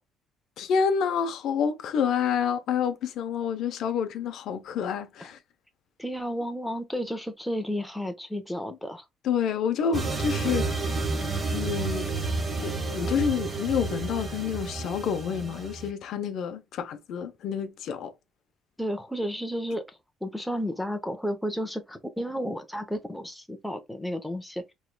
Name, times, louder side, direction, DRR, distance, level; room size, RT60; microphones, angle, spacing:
voice 1, 0.6-5.4 9.2-10.8 11.5-12.1 12.6-18.1, left 7 dB, 60° left, 0.6 m, -28 dB
voice 2, 6.0-9.1 18.8-24.7, equal, ahead, 0.7 m, -32 dB
sound 1, 9.9-15.9, right 3 dB, 25° right, 0.9 m, -30 dB
4.6 x 3.1 x 2.2 m
cardioid pair, 140°, 0 cm